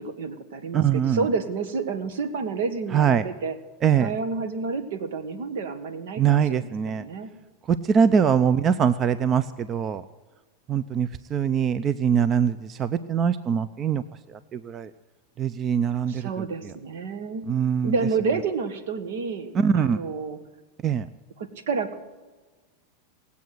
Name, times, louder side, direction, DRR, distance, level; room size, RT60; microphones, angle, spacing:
voice 1, 0.0-3.6 4.0-7.3 8.0-8.3 16.1-17.5 17.8-20.4 21.4-22.0, right 4 dB, 75° right, 10 dB, 1.6 m, -30 dB
voice 2, 0.7-1.3 2.9-3.3 3.8-4.1 6.2-7.1 7.7-10.0 10.7-14.0 14.3-14.9 15.4-16.7 17.5-18.0 19.5-20.0 20.8-21.1, right 7 dB, 30° right, 15 dB, 0.5 m, -23 dB
18.5 x 8.4 x 7.8 m, 1.3 s
hypercardioid pair, 115°, 0 cm